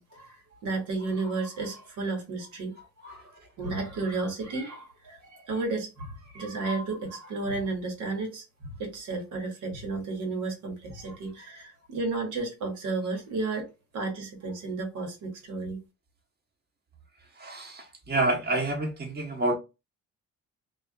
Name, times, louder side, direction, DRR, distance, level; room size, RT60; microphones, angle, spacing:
voice 1, 0.0-13.7 13.9-15.8, right 3 dB, 80° right, 1.2 m, -33 dB
voice 2, 17.4-19.5, right 2 dB, 35° right, 1.1 m, -28 dB
2.4 x 2.2 x 2.3 m
cardioid pair, 90°, 30 cm